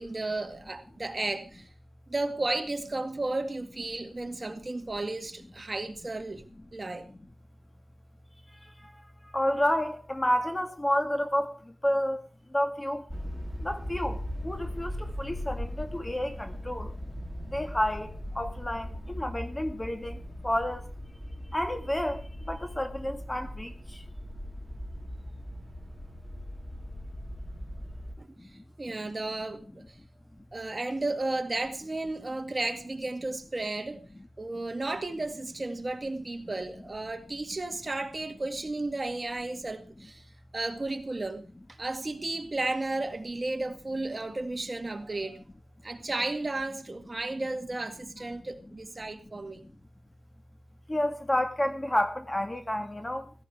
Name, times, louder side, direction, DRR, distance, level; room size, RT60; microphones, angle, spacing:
voice 1, 0.0-1.7 2.1-7.1 28.2-28.5 28.8-30.0 30.5-34.1 34.4-40.3 40.5-45.4 45.8-49.6, right 2 dB, 30° right, 2.0 m, -33 dB
voice 2, 8.6-12.2 12.5-13.1 13.6-16.9 17.5-20.9 21.5-24.0 28.4-28.6 49.6-49.7 50.9-53.3, left 1 dB, 15° left, 1.7 m, -30 dB
sound 1, 13.1-28.1, equal, ahead, 3.9 m, -39 dB
16.5 x 15.5 x 3.5 m
wide cardioid pair, 105°, 0 cm